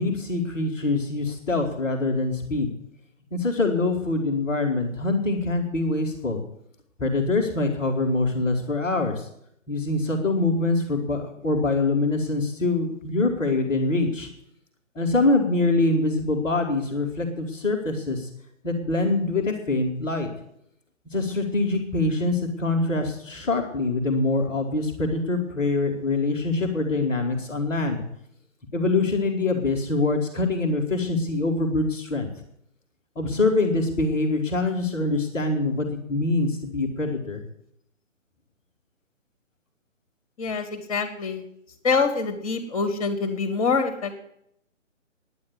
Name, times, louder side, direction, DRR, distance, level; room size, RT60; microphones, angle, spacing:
voice 1, 0.0-2.7 3.3-6.4 7.0-9.3 9.7-14.3 14.9-18.3 18.6-20.3 21.1-28.0 28.7-32.3 33.1-37.4, left 2 dB, 10° left, -9 dB, 1.5 m, -24 dB
voice 2, 40.4-41.4 41.8-44.1, left 4 dB, 25° left, 7 dB, 1.9 m, -25 dB
10.0 x 9.6 x 9.4 m, 0.73 s
figure-of-eight pair, 145°, 39 cm